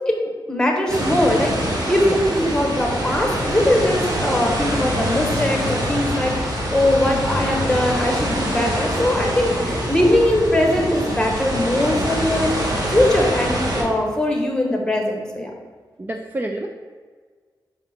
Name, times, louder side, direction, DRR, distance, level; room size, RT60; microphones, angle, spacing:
voice 1, 0.5-15.5, left 1 dB, 10° left, 1 dB, 1.3 m, -21 dB
sound 1, 0.9-13.8, equal, 50° right, 1.6 m, -24 dB
voice 2, 16.0-16.7, right 1 dB, 25° right, 3 dB, 0.5 m, -28 dB
5.6 x 4.9 x 4.4 m, 1.5 s
wide cardioid pair, 90°, 8 cm